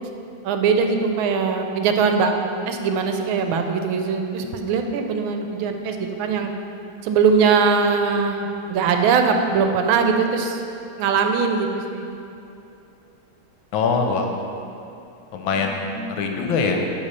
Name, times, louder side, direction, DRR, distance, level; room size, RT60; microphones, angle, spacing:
voice 1, 0.4-2.3 2.7-6.5 7.0-10.6 11.0-12.1 15.5-16.1, right 5 dB, 85° right, 5 dB, 1.4 m, -21 dB
voice 2, 13.7-14.3 15.3-16.8, left 4 dB, 80° left, 3 dB, 1.4 m, -23 dB
10.0 x 3.4 x 4.1 m, 2.7 s
omnidirectional pair, 2.2 m